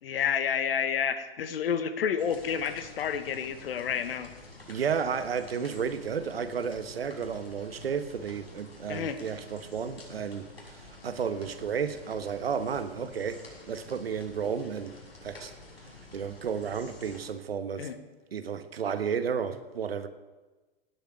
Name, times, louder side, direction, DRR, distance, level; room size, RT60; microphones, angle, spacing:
voice 1, 0.0-4.3 8.9-9.2 17.8-18.0, left 7 dB, 70° left, 1.5 m, -30 dB
sound 1, 2.2-17.3, left 2 dB, 90° left, 6.2 m, -50 dB
voice 2, 4.7-15.0 15.2-15.5 16.1-17.9 18.3-20.1, right 6 dB, 80° right, 1.3 m, -32 dB
17.5 x 6.9 x 8.8 m
hypercardioid pair, 100°, 30 cm